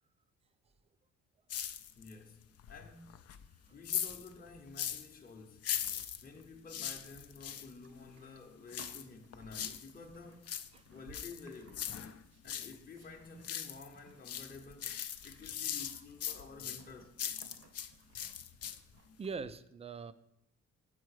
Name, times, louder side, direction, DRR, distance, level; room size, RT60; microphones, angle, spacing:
sound 1, 1.5-2.2 2.6-5.1 5.6-7.7 8.7-9.9 10.3-12.8 13.1-13.9 14.2-17.9 18.1-19.0 19.3-19.4, left 9 dB, 55° left, 0.6 m, -40 dB
voice 1, 1.9-3.3 3.7-5.8 6.2-10.5 10.9-11.9 12.4-15.0 15.2-17.3, left 4 dB, 30° left, 0.9 m, -52 dB
Livestock farm animals working animals, 7.0-19.5, right 4 dB, 55° right, 0.9 m, -62 dB
voice 2, 19.2-20.1, right 5 dB, 20° right, 0.4 m, -42 dB
7.6 x 4.6 x 4.7 m
cardioid pair, 90°, 30 cm